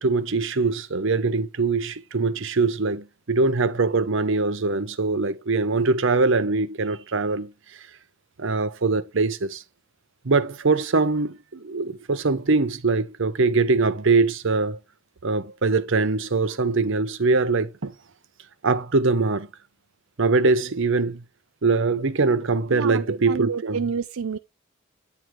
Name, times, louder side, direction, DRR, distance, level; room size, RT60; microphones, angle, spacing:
voice 1, 0.0-7.5 8.4-9.6 10.2-14.8 15.2-17.9 18.6-19.5 20.2-21.2 21.6-23.8, right 3 dB, 65° right, 0.8 m, -22 dB
voice 2, 22.7-24.4, right 6 dB, 85° right, 0.5 m, -29 dB
9.4 x 4.8 x 3.6 m
head